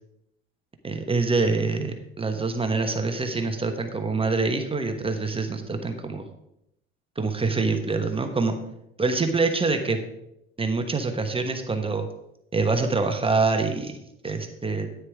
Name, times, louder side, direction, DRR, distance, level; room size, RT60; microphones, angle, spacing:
voice 1, 0.8-6.2 7.2-8.6 9.0-10.0 10.6-12.1 12.5-14.0 14.2-14.9, right 3 dB, 15° right, 6 dB, 1.2 m, -25 dB
9.7 x 9.5 x 3.6 m, 0.81 s
hypercardioid pair, 85°, 34 cm